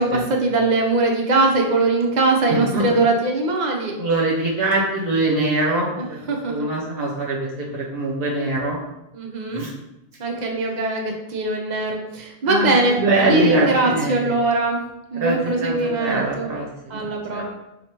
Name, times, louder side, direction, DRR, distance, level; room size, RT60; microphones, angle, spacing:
voice 1, 0.0-3.9 6.0-6.7 9.1-9.6 10.2-13.0 13.3-14.8 15.1-16.5 16.9-17.4, right 2 dB, 50° right, 1 dB, 0.7 m, -21 dB
voice 2, 2.5-2.9 4.0-5.9 6.3-8.8 9.5-9.7 12.4-14.2 15.1-17.4, right 2 dB, 70° right, -4 dB, 1.0 m, -23 dB
4.6 x 2.5 x 2.9 m, 0.88 s
omnidirectional pair, 1.0 m